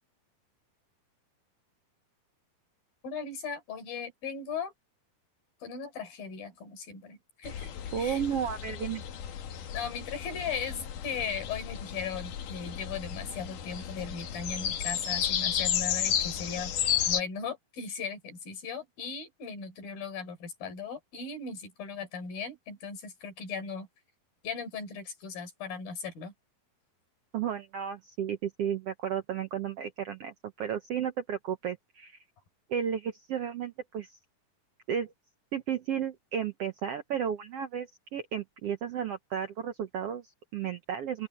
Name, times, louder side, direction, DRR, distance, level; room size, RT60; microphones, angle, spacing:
voice 1, 3.0-4.7 5.6-8.2 9.7-16.7 17.1-23.9 24.4-26.3, left 6 dB, 85° left, 6.5 m, -38 dB
sound 1, 7.4-17.2, left 9 dB, 70° left, 3.0 m, -33 dB
voice 2, 7.9-9.0 27.3-32.2 32.7-34.2 34.9-35.1 35.5-41.3, right 8 dB, 75° right, 1.4 m, -33 dB
open air
omnidirectional pair, 4.0 m